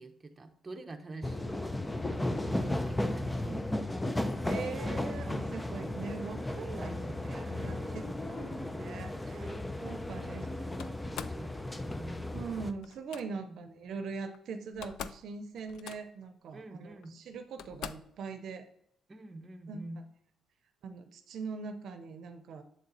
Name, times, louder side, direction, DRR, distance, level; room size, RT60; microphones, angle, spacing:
voice 1, 0.0-1.6 2.1-4.0 5.8-6.3 6.6-7.2 7.6-8.6 9.3-12.2 13.4-13.6 16.5-17.2 19.1-20.0, right 2 dB, 30° right, 4 dB, 0.8 m, -47 dB
sound 1, 1.2-12.7, left 1 dB, 10° left, 0.5 m, -35 dB
voice 2, 4.4-8.0 8.3-10.5 12.3-18.7 19.7-19.8 20.8-22.6, right 5 dB, 70° right, 7 dB, 0.7 m, -42 dB
Slam, 10.8-11.4 12.8-13.2 14.3-14.4 14.7-15.3 15.6-16.3 17.0-17.1 17.6-18.2, left 9 dB, 80° left, 0.3 m, -44 dB
7.7 x 4.0 x 3.9 m, 0.72 s
cardioid pair, 90°, 0 cm